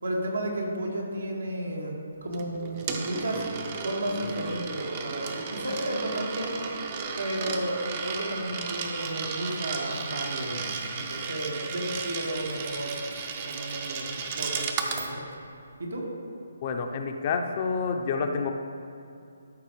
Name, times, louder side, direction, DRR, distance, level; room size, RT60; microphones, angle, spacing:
voice 1, 0.0-3.5 3.8-6.6 7.2-13.0 13.4-15.2 15.8-16.1, right 1 dB, 80° right, -2 dB, 1.9 m, -33 dB
Coin (dropping), 2.3-15.1, right 5 dB, 35° right, 0.7 m, -34 dB
voice 2, 16.6-18.5, left 5 dB, 35° left, 4 dB, 0.6 m, -28 dB
13.0 x 5.3 x 3.2 m, 2.6 s
figure-of-eight pair, 150°, 0 cm